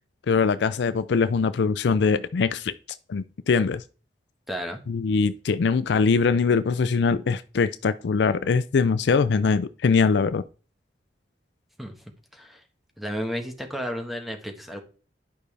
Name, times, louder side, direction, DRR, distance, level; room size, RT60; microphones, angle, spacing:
voice 1, 0.3-2.7 3.1-3.8 4.9-10.4, left 5 dB, 70° left, 0.4 m, -22 dB
voice 2, 4.5-4.8 11.8-11.9 12.3-12.6 13.0-14.8, equal, ahead, 1.2 m, -32 dB
10.5 x 5.3 x 3.3 m
head